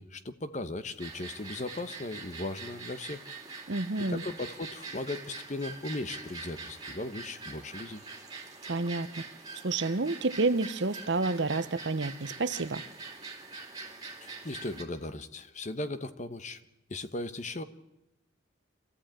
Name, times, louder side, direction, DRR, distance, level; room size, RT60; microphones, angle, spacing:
voice 1, 0.0-3.2 4.1-8.0 14.2-16.6 16.9-17.6, left 2 dB, 35° left, 11 dB, 1.0 m, -37 dB
sound 1, 1.0-14.8, right 4 dB, 20° right, 2.7 m, -44 dB
voice 2, 3.7-4.2 8.7-9.1 9.6-12.8, right 3 dB, 60° right, 13 dB, 0.9 m, -29 dB
26.0 x 14.5 x 8.9 m, 0.94 s
head